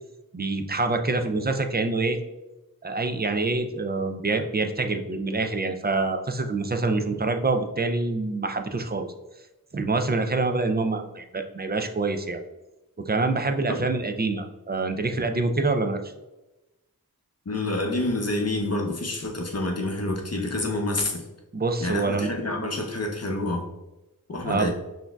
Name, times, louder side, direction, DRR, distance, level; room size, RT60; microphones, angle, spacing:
voice 1, 0.3-2.2 2.8-9.1 9.7-12.4 13.0-16.1 21.5-22.3 22.6-22.7 24.4-24.7, right 3 dB, 30° right, 6 dB, 0.4 m, -26 dB
voice 2, 17.5-21.2 21.8-23.7 24.3-24.7, left 2 dB, 45° left, 1 dB, 0.7 m, -28 dB
5.9 x 2.6 x 2.3 m, 1.0 s
wide cardioid pair, 65°, 36 cm